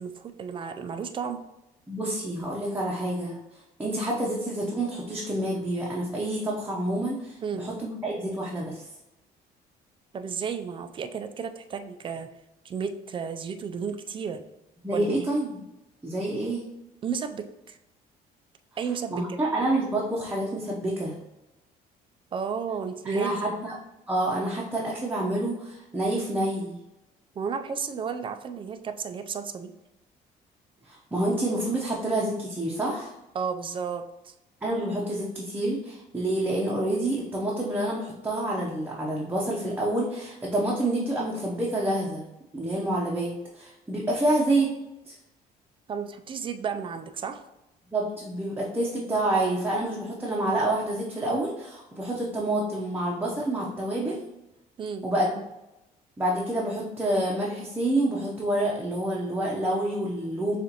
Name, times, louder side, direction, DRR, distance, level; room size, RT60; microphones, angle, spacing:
voice 1, 0.0-1.4 7.4-7.7 10.1-12.3 12.6-14.4 14.9-15.3 17.0-17.8 18.8-19.4 22.3-23.3 27.4-29.7 33.3-34.3 45.9-47.4 54.8-55.0, right 6 dB, 30° right, 8 dB, 0.4 m, -33 dB
voice 2, 1.9-3.4 3.8-8.8 14.8-15.6 16.0-16.6 19.1-21.2 23.0-23.7 24.1-26.8 30.9-33.1 34.6-42.3 42.5-44.8 45.1-45.2 47.9-54.2 55.0-55.3 56.2-60.6, right 1 dB, 10° right, -5 dB, 0.8 m, -28 dB
6.7 x 2.5 x 2.9 m, 0.92 s
cardioid pair, 110°, 17 cm